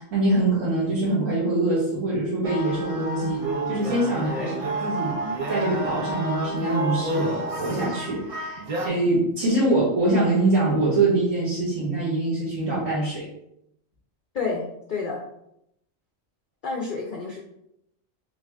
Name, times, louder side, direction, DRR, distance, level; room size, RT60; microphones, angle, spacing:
voice 1, 0.0-13.3, right 2 dB, 75° right, -8 dB, 1.8 m, -24 dB
sound 1, 2.4-8.9, right 2 dB, 45° right, 0.4 m, -30 dB
voice 2, 14.9-15.2 16.6-17.4, left 4 dB, 50° left, -1 dB, 0.7 m, -29 dB
5.1 x 2.5 x 3.4 m, 0.79 s
omnidirectional pair, 1.4 m